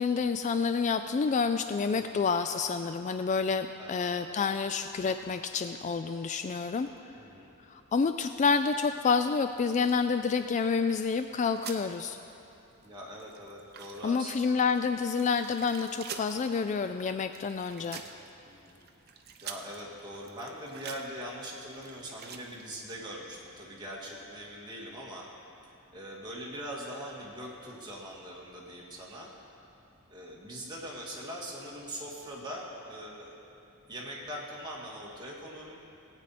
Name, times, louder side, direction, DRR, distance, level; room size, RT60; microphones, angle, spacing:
voice 1, 0.0-6.9 7.7-12.2 14.0-18.0, left 5 dB, 35° left, 9 dB, 0.3 m, -28 dB
voice 2, 1.9-2.2 3.8-4.1 7.1-7.6 12.8-14.6 17.9-18.2 18.5-18.8 19.4-25.3 25.7-29.3 30.1-33.4 33.9-35.8, equal, 20° right, -4 dB, 2.0 m, -42 dB
sound 1, 9.5-11.0 11.3-11.9 12.3-12.4 12.7-23.0, right 6 dB, 50° right, 0.8 m, -47 dB
18.5 x 9.0 x 4.2 m, 2.8 s
head